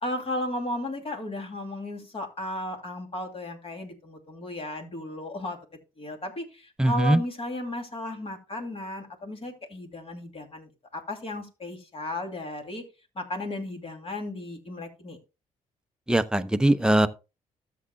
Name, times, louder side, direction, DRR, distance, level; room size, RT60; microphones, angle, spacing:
voice 1, 0.0-5.6 6.0-12.8 13.1-15.2, left 1 dB, 40° left, 2.7 m, -35 dB
voice 2, 6.8-7.2 16.1-17.1, right 1 dB, 5° right, 0.6 m, -21 dB
13.0 x 7.5 x 2.2 m
supercardioid pair, 65°, 15 cm